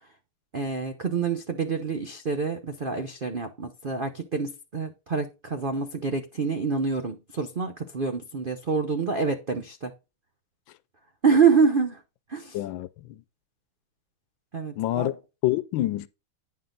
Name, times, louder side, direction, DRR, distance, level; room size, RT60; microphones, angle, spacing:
voice 1, 0.5-9.9 11.2-12.0 12.3-12.6 14.5-15.1, right 5 dB, 90° right, 0.4 m, -26 dB
voice 2, 12.5-13.2 14.8-15.1 15.4-16.1, left 15 dB, 75° left, 1.3 m, -27 dB
9.6 x 5.6 x 3.8 m
omnidirectional pair, 2.2 m